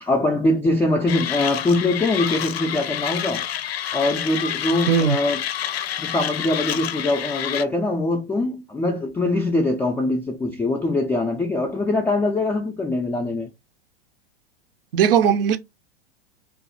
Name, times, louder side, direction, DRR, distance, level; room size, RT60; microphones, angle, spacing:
voice 1, 0.0-3.4 3.9-5.4 6.0-13.5, left 2 dB, 5° left, 0.3 m, -23 dB
Mechanisms, 1.1-7.6, left 10 dB, 75° left, 0.5 m, -28 dB
voice 2, 14.9-15.6, right 7 dB, 65° right, 0.6 m, -18 dB
2.6 x 2.5 x 3.8 m
hypercardioid pair, 100°, 31 cm